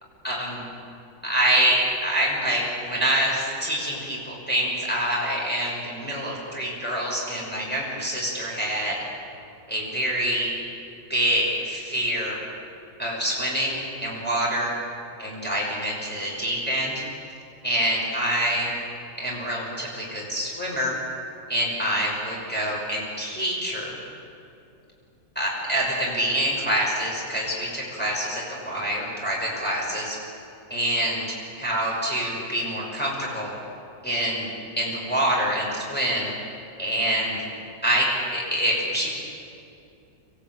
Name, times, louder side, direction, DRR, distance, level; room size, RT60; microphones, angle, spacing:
voice 1, 0.2-0.6 1.2-8.9 9.7-10.5 11.1-12.4 13.0-14.7 15.2-16.9 17.6-18.7 19.2-20.9 21.5-24.0 25.4-30.2 30.7-31.2 31.6-33.5 34.0-34.5 34.8-36.3 36.8-37.4 37.8-39.1, equal, 5° left, -5 dB, 6.0 m, -26 dB
27.0 x 15.0 x 9.2 m, 2.6 s
omnidirectional pair, 1.9 m